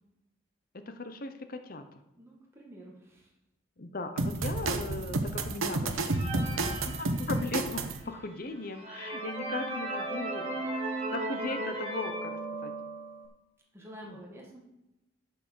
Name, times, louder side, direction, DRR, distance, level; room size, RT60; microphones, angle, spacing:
voice 1, 0.7-2.0 3.8-10.7 11.1-12.7 14.1-14.2, left 2 dB, 45° left, 8 dB, 0.8 m, -38 dB
voice 2, 2.2-3.3 8.0-8.4 13.7-14.6, equal, 15° right, -2 dB, 1.8 m, -49 dB
sound 1, 4.2-8.0, right 2 dB, 90° right, 1.0 m, -31 dB
sound 2, 6.1-7.7 8.3-8.4 8.7-13.3, right 2 dB, 35° right, 2.0 m, -36 dB
11.0 x 6.0 x 6.3 m, 0.92 s
head